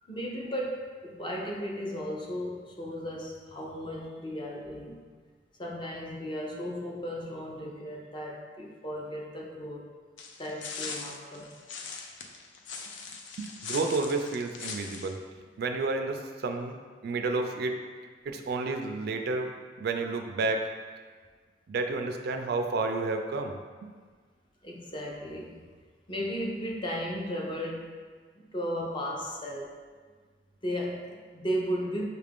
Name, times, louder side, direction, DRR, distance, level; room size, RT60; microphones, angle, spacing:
voice 1, 0.0-5.0 5.6-9.8 10.4-11.5 24.6-25.6 26.1-27.9 28.3-29.7 30.6-32.1, equal, 25° left, -1 dB, 0.6 m, -35 dB
sound 1, 10.2-15.1, left 5 dB, 80° left, 0.4 m, -40 dB
voice 2, 13.4-15.2 15.6-16.8 17.0-17.8 18.3-19.5 19.8-20.7 21.7-23.9, right 3 dB, 60° right, 5 dB, 0.3 m, -31 dB
5.8 x 2.4 x 3.4 m, 1.5 s
head